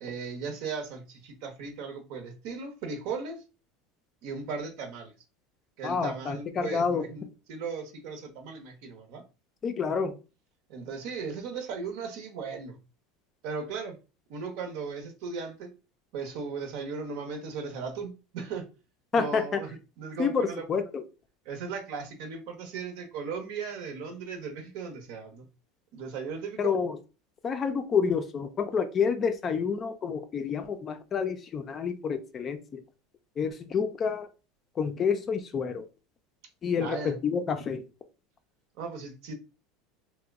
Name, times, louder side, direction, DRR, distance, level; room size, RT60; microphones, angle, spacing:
voice 1, 0.0-3.4 4.2-5.1 5.8-9.2 10.7-12.8 13.4-14.0 14.3-15.7 16.1-18.7 19.1-20.7 21.4-25.4 25.9-26.8 36.8-37.2 38.8-39.3, right 5 dB, 65° right, 0.8 m, -37 dB
voice 2, 5.8-7.1 9.6-10.2 19.1-19.6 20.2-20.8 26.6-27.0 27.4-32.8 33.4-34.3 34.8-35.8 36.6-37.8, left 6 dB, 30° left, 0.4 m, -28 dB
2.9 x 2.1 x 3.5 m
supercardioid pair, 135°, 0 cm